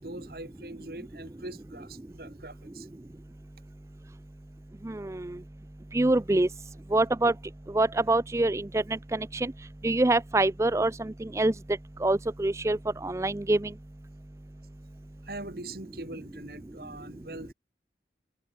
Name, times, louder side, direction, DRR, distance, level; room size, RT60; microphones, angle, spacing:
voice 1, 0.0-2.9 15.2-17.5, right 2 dB, 55° right, 2.8 m, -42 dB
voice 2, 4.8-5.4 5.9-6.5 6.9-7.3 7.7-8.8 9.1-9.5 9.8-11.5 12.0-13.7, right 2 dB, 15° right, 0.4 m, -25 dB
head